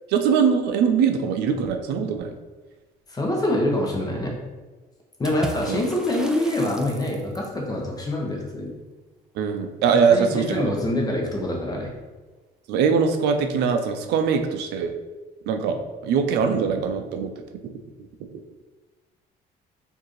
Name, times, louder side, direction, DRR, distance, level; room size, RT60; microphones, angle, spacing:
voice 1, 0.1-2.3 5.7-5.8 9.3-10.7 12.7-14.9 15.5-17.3 18.0-18.4, right 6 dB, 80° right, 6 dB, 0.5 m, -22 dB
voice 2, 3.1-4.3 5.2-8.7 10.1-11.9, left 1 dB, 20° left, -1 dB, 1.0 m, -25 dB
Water / Splash splatter, 5.2-7.6, equal, 5° right, 0.4 m, -37 dB
4.6 x 2.6 x 3.1 m, 1.2 s
cardioid pair, 110°, 17 cm